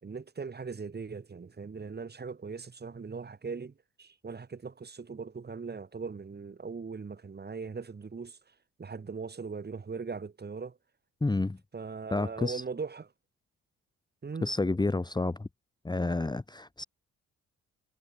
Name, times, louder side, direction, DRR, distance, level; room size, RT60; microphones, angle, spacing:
voice 1, 0.0-10.8 11.7-13.1 14.2-14.5, right 5 dB, 35° right, 5.0 m, -40 dB
voice 2, 11.2-11.6 12.1-12.6 14.4-15.5 15.8-16.8, left 2 dB, 15° left, 1.5 m, -29 dB
cardioid pair, 90°, 30 cm